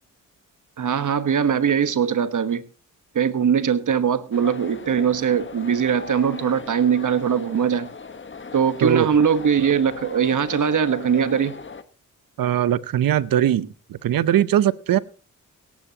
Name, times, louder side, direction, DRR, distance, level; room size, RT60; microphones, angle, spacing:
voice 1, 0.8-2.6 3.1-7.9 8.5-11.6, right 7 dB, 60° right, 13 dB, 1.3 m, -21 dB
sound 1, 4.3-11.8, left 4 dB, 35° left, 1.2 m, -38 dB
voice 2, 12.4-15.0, right 11 dB, 75° right, 18 dB, 0.8 m, -20 dB
17.0 x 14.5 x 2.9 m, 0.35 s
cardioid pair, 60°, 34 cm